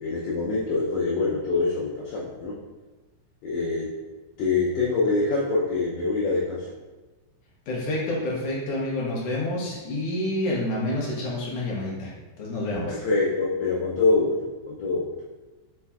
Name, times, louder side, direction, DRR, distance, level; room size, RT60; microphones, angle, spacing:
voice 1, 0.0-2.6 3.4-3.9 4.4-6.7 12.9-15.1, left 3 dB, 80° left, -6 dB, 1.5 m, -25 dB
voice 2, 7.7-12.1 12.4-13.0, left 1 dB, 65° left, -5 dB, 1.8 m, -28 dB
5.5 x 3.2 x 2.3 m, 1.2 s
omnidirectional pair, 3.7 m